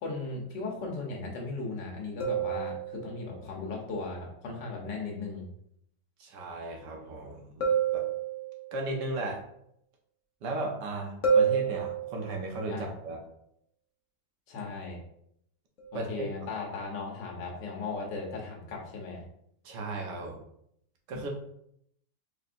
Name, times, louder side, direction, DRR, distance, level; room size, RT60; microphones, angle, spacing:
voice 1, 0.0-5.5 12.7-12.9 14.5-15.0 15.9-19.2, left 3 dB, 75° left, 0 dB, 1.6 m, -37 dB
sound 1, 2.2-3.3 7.6-8.8 11.2-12.5 15.8-16.0, right 6 dB, 50° left, 1.0 m, -28 dB
voice 2, 6.2-8.0 8.7-9.4 10.4-13.2 15.9-16.3 19.6-20.4 21.1-21.3, right 2 dB, 75° right, 1 dB, 1.5 m, -36 dB
4.5 x 3.7 x 2.5 m, 0.72 s
omnidirectional pair, 1.9 m